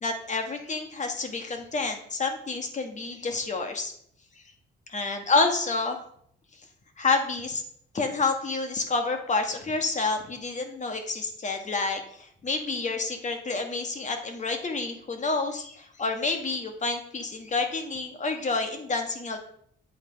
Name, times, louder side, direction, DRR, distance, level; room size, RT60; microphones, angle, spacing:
voice 1, 0.0-3.9 4.9-6.0 7.0-7.6 7.9-12.0 12.4-19.4, left 3 dB, 40° left, 5 dB, 1.1 m, -28 dB
8.0 x 4.0 x 3.7 m, 0.65 s
cardioid pair, 90°, 20 cm